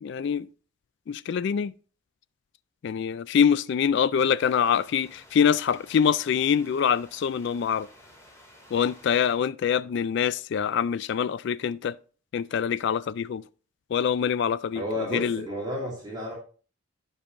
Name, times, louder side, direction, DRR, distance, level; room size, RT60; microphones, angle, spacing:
voice 1, 0.0-0.5 1.1-1.7 2.8-7.9 8.7-11.9 12.3-13.4 13.9-14.8 15.1-15.4, left 7 dB, 60° left, 0.3 m, -25 dB
sound 1, 4.4-9.4, left 1 dB, 15° left, 2.3 m, -53 dB
voice 2, 14.7-16.3, left 1 dB, 20° right, 2.7 m, -31 dB
15.5 x 5.5 x 2.6 m
head